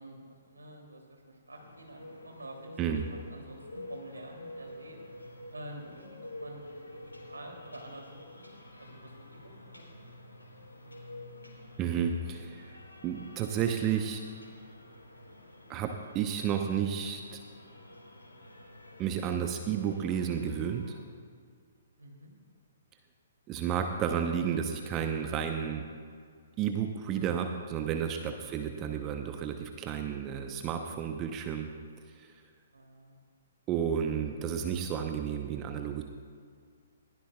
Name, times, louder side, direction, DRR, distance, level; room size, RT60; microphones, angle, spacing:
voice 1, 0.0-3.0 3.3-5.0 5.5-6.6 6.9-10.0 22.0-22.3 32.7-33.2, right 1 dB, 75° right, 1 dB, 2.8 m, -48 dB
sound 1, 1.5-21.0, left 1 dB, 75° left, 3.0 m, -49 dB
voice 2, 11.8-12.8 13.0-14.2 15.7-17.4 19.0-20.8 23.5-25.8 26.6-31.7 32.2-32.3 33.7-36.0, right 8 dB, 25° right, 5 dB, 0.8 m, -32 dB
20.5 x 16.0 x 2.4 m, 2.1 s
figure-of-eight pair, 125°, 0 cm